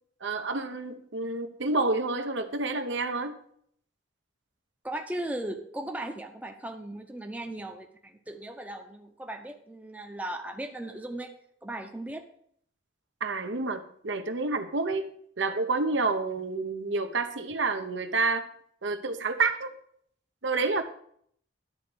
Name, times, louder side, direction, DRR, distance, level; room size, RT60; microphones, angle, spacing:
voice 1, 0.2-3.3 13.2-15.1 15.4-18.4 18.8-19.7 20.4-20.8, right 3 dB, 70° right, 0.9 m, -29 dB
voice 2, 4.8-11.3 11.6-12.2, right 1 dB, 10° right, 0.7 m, -37 dB
11.5 x 4.2 x 7.8 m
head